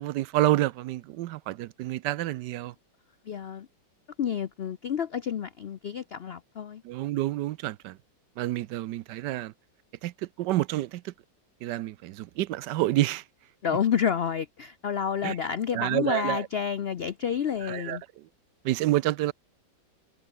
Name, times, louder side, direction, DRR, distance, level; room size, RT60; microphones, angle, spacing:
voice 1, 0.0-2.7 6.8-8.0 8.4-9.5 10.0-10.1 10.4-11.1 11.6-13.2 15.2-15.3 15.7-16.5 17.6-18.0 18.6-19.3, right 15 dB, 75° right, 1.2 m, -28 dB
voice 2, 3.3-3.7 4.2-6.8 13.6-18.0, left 8 dB, 85° left, 0.5 m, -29 dB
omnidirectional pair, 1.9 m